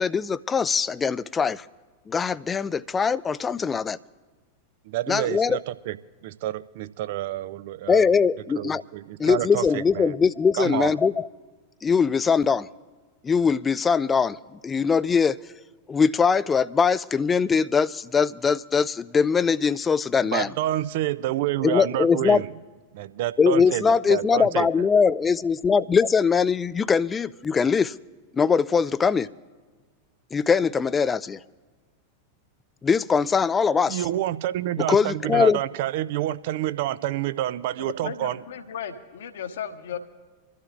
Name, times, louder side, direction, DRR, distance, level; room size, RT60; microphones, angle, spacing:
voice 1, 0.0-1.6 2.1-4.0 5.1-5.6 7.9-8.8 9.2-11.3 11.8-12.7 13.2-14.4 14.6-15.4 15.9-20.5 21.6-22.4 23.4-27.9 28.3-29.3 30.3-31.4 32.8-34.0 34.9-35.6, left 5 dB, 20° left, 17 dB, 0.3 m, -21 dB
voice 2, 4.9-6.0 6.2-8.2 8.6-10.1 10.5-10.9 20.3-22.5 22.9-24.8 33.9-38.4, right 14 dB, 50° right, 15 dB, 0.4 m, -28 dB
voice 3, 37.8-40.0, left 8 dB, 60° left, 8 dB, 1.1 m, -35 dB
26.0 x 12.5 x 2.5 m, 1.4 s
figure-of-eight pair, 90°, 0 cm